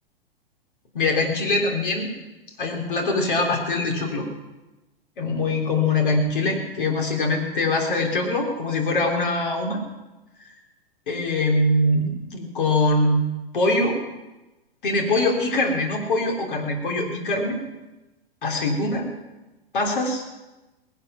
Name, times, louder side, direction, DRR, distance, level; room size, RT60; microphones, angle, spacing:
voice 1, 0.9-2.1 2.6-4.3 5.2-9.8 10.4-10.6 11.1-13.2 13.5-14.0 14.8-17.6 18.4-19.1 19.7-20.2, left 2 dB, 60° left, 1 dB, 3.5 m, -23 dB
18.5 x 11.5 x 5.9 m, 1.1 s
figure-of-eight pair, 105°, 30 cm